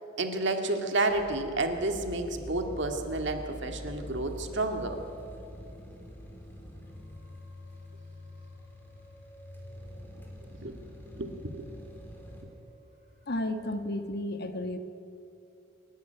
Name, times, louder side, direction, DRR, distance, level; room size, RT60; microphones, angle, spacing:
voice 1, 0.2-5.0 10.6-10.8 11.2-11.7, right 2 dB, 65° right, 5 dB, 2.1 m, -30 dB
sound 1, 1.1-13.7, equal, 35° left, 6.8 m, -47 dB
sound 2, 1.7-12.4, equal, 10° left, 3.6 m, -49 dB
voice 2, 13.3-14.8, left 1 dB, 55° left, 8 dB, 1.5 m, -32 dB
28.5 x 11.5 x 9.3 m, 2.7 s
head